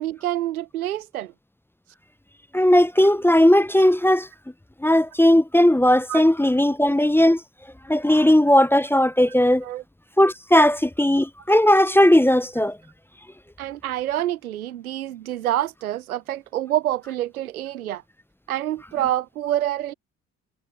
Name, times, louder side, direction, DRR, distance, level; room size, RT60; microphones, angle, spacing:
voice 1, 0.0-1.3 6.1-6.2 6.8-6.9 9.6-9.8 13.6-18.0 18.5-19.9, right 13 dB, 85° right, 1.0 m, -27 dB
voice 2, 2.5-4.3 4.8-7.4 7.9-9.6 10.2-12.8, left 1 dB, 5° left, 0.9 m, -17 dB
figure-of-eight pair, 50°, 42 cm